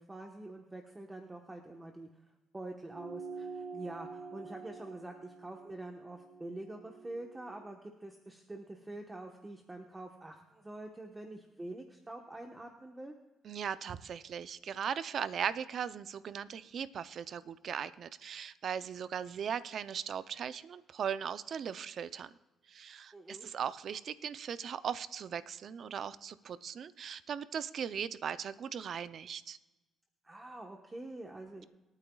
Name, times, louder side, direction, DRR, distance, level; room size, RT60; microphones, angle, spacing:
voice 1, 0.0-2.1 2.5-13.1 23.1-23.5 30.2-31.6, right 2 dB, 15° right, 3 dB, 1.2 m, -46 dB
sound 1, 2.9-7.7, right 4 dB, 85° right, 1.6 m, -47 dB
voice 2, 13.4-22.3 22.7-29.6, right 8 dB, 60° right, 14 dB, 0.6 m, -38 dB
26.5 x 9.0 x 2.4 m, 1.1 s
cardioid pair, 90°, 0 cm